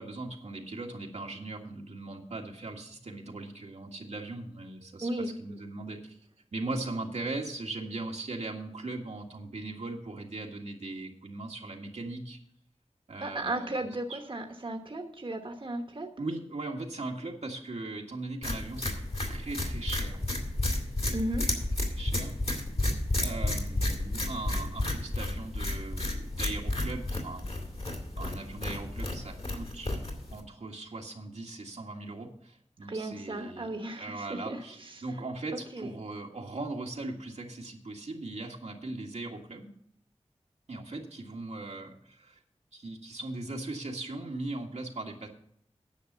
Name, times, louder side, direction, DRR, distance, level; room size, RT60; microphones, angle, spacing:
voice 1, 0.0-6.2 6.5-12.4 13.1-14.2 16.2-20.2 21.9-22.3 23.2-27.5 28.2-33.7 34.0-39.7 40.7-42.4 42.7-45.3, right 2 dB, 85° right, 0 dB, 1.7 m, -39 dB
voice 2, 5.0-5.6 13.2-16.1 21.1-21.5 32.9-34.9 35.7-35.9, right 1 dB, 50° right, 4 dB, 1.1 m, -35 dB
sound 1, 18.4-30.4, left 1 dB, 65° left, 2.6 m, -32 dB
10.0 x 6.4 x 8.0 m, 0.67 s
wide cardioid pair, 45°, 11 cm